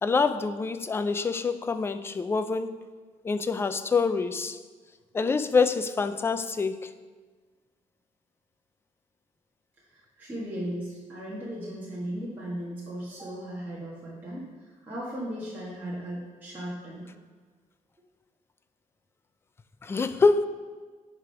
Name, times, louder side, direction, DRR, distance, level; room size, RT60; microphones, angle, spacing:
voice 1, 0.0-2.8 3.2-4.6 5.1-6.9 19.8-20.5, left 4 dB, 15° left, 11 dB, 0.3 m, -26 dB
voice 2, 9.9-17.1, right 1 dB, 15° right, -8 dB, 1.4 m, -37 dB
9.7 x 3.4 x 5.6 m, 1.4 s
cardioid pair, 165°, 14 cm